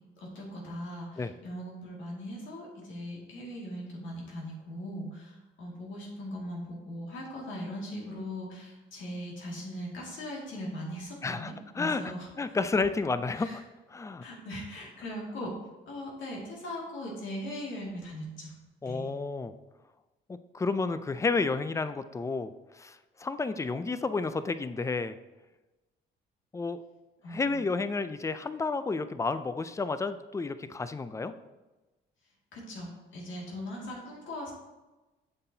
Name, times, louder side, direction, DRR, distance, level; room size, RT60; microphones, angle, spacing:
voice 1, 0.2-12.8 13.4-13.6 14.2-15.5 15.9-18.5 18.9-19.1 27.2-27.7 32.5-34.5, equal, 75° left, -3 dB, 2.2 m, -40 dB
voice 2, 11.2-12.0 12.4-13.6 13.9-14.2 18.8-19.5 20.3-25.2 26.5-26.8 27.3-31.3, left 4 dB, 15° left, 12 dB, 0.4 m, -31 dB
7.6 x 5.9 x 2.8 m, 1.1 s
cardioid pair, 90°, 20 cm